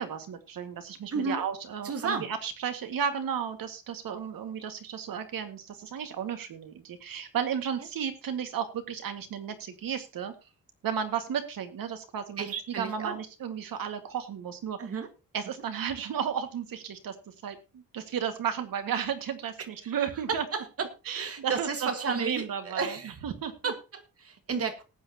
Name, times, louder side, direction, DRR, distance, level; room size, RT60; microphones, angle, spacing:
voice 1, 0.0-10.3 10.8-14.8 15.3-20.4 21.1-23.7, right 8 dB, 85° right, 7 dB, 2.0 m, -34 dB
voice 2, 1.1-1.4 1.8-2.3 12.4-13.2 14.8-15.1 19.8-23.2 23.6-24.8, right 5 dB, 45° right, 7 dB, 1.8 m, -33 dB
19.0 x 8.7 x 2.9 m, 0.29 s
wide cardioid pair, 160°, 33 cm